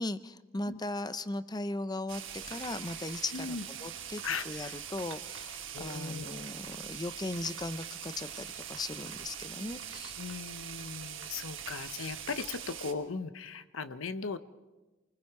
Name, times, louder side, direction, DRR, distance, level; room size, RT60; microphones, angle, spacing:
voice 1, 0.0-10.2, left 2 dB, 20° left, 14 dB, 0.6 m, -38 dB
sound 1, 2.1-12.9, right 9 dB, 70° right, 1.6 m, -42 dB
sound 2, 2.4-5.5, left 3 dB, 55° left, 6.0 m, -56 dB
voice 2, 3.3-3.7 4.2-4.8 5.7-6.5 10.2-14.4, left 4 dB, 90° left, 12 dB, 0.9 m, -38 dB
28.0 x 20.5 x 4.7 m, 1.1 s
head